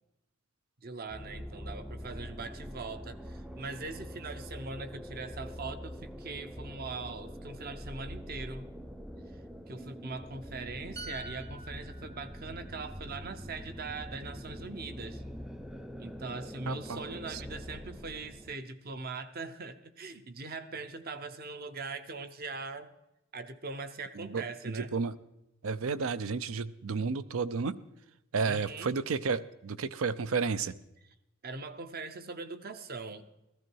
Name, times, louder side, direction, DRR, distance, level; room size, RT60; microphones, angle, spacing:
voice 1, 0.8-8.7 9.7-15.2 16.0-22.9 23.3-24.9 28.4-29.0 31.0-31.1 31.4-33.3, right 3 dB, 45° right, 11 dB, 0.8 m, -41 dB
sound 1, 1.1-18.5, equal, ahead, 0.4 m, -44 dB
sound 2, 11.0-14.6 14.9-15.1, right 1 dB, 30° right, 1.3 m, -49 dB
voice 2, 16.7-17.4 24.2-25.2 25.6-27.8 28.3-30.7, right 5 dB, 80° right, 16 dB, 0.6 m, -32 dB
15.0 x 13.5 x 4.6 m, 0.92 s
head